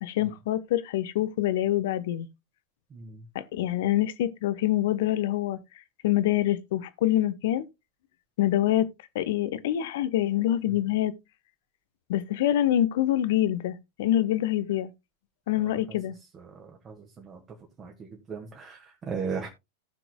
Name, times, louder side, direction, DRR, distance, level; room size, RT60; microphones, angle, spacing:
voice 1, 0.0-2.3 3.3-5.6 6.0-7.7 8.4-11.1 12.1-14.9 15.5-16.1, left 13 dB, 55° left, 0.7 m, -26 dB
voice 2, 2.9-3.2 10.7-10.8 16.5-17.4 17.8-19.5, right 5 dB, 25° right, 1.7 m, -37 dB
17.5 x 5.9 x 2.2 m
figure-of-eight pair, 90°, 0 cm